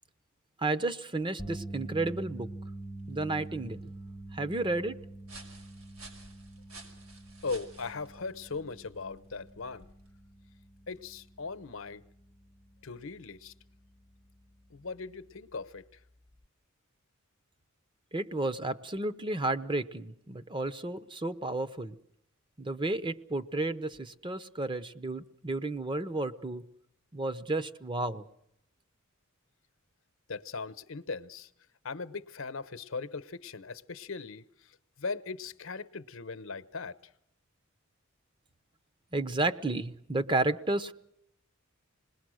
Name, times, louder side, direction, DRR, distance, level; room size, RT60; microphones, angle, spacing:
voice 1, 0.6-2.5 3.1-3.8 4.3-5.0 18.1-21.9 22.6-26.6 27.1-28.2 39.1-40.9, right 2 dB, 25° right, 0.9 m, -32 dB
sound 1, 1.4-13.7 14.0-14.3 16.4-16.5, right 2 dB, ahead, 0.8 m, -46 dB
sound 2, 2.8-10.3, right 2 dB, 90° right, 5.8 m, -54 dB
voice 2, 7.4-9.9 10.9-12.0 12.8-13.5 14.7-16.0 30.3-31.5 31.8-37.0, left 4 dB, 65° left, 0.9 m, -39 dB
27.0 x 20.5 x 6.4 m
head